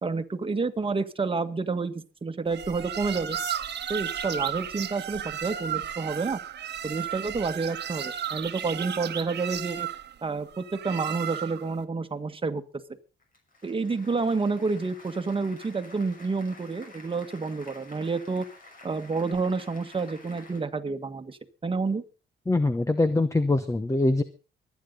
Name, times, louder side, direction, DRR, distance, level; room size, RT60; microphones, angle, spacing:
voice 1, 0.0-3.4 3.9-6.4 6.8-9.9 10.2-12.6 13.6-18.5 18.8-22.0, right 4 dB, 25° right, 8 dB, 1.6 m, -29 dB
sound 1, 2.5-11.7, right 9 dB, 60° right, 1.3 m, -34 dB
Applause, 13.2-20.6, left 2 dB, 45° left, 6.1 m, -50 dB
voice 2, 22.5-24.2, left 2 dB, 15° left, 11 dB, 1.0 m, -23 dB
24.0 x 9.6 x 3.9 m, 0.34 s
cardioid pair, 90°, 20 cm